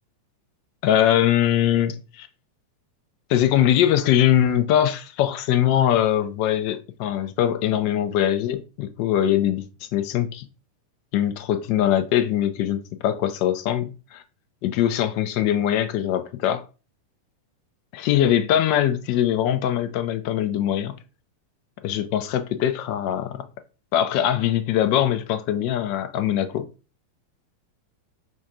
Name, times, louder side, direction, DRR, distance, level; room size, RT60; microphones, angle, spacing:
voice 1, 0.8-2.3 3.3-9.7 9.9-10.5 11.1-14.2 14.6-16.6 17.9-21.0 21.8-23.5 23.9-26.7, left 11 dB, 45° left, 0.4 m, -22 dB
6.1 x 2.4 x 2.7 m
figure-of-eight pair, 90°, 0 cm